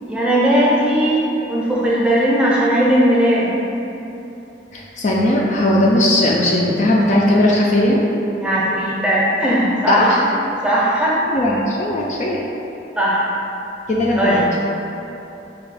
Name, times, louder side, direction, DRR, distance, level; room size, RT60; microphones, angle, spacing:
voice 1, 0.1-3.6 8.4-10.1 10.5-11.2 13.0-13.3 14.1-14.5, right 1 dB, 5° right, -7 dB, 0.6 m, -17 dB
voice 2, 4.7-8.0 9.9-10.2 11.3-12.4 13.9-14.4, left 1 dB, 40° left, -3 dB, 0.3 m, -17 dB
4.2 x 2.3 x 3.9 m, 3.0 s
head